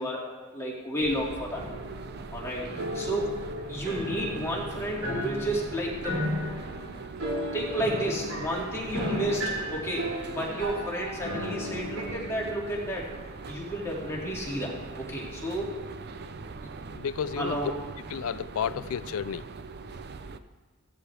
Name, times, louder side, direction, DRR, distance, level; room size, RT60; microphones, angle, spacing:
voice 1, 0.0-1.6 2.2-3.3 3.7-6.4 7.5-13.1 13.5-15.7 16.6-16.7 17.4-17.7, equal, 10° left, 2.3 m, -32 dB
sound 1, 1.0-20.4, right 4 dB, 45° right, 0.5 m, -42 dB
sound 2, 1.6-12.6, equal, 75° right, 3.6 m, -35 dB
voice 2, 16.9-17.8 18.1-19.4, left 8 dB, 70° left, 0.3 m, -32 dB
16.5 x 13.0 x 3.4 m
head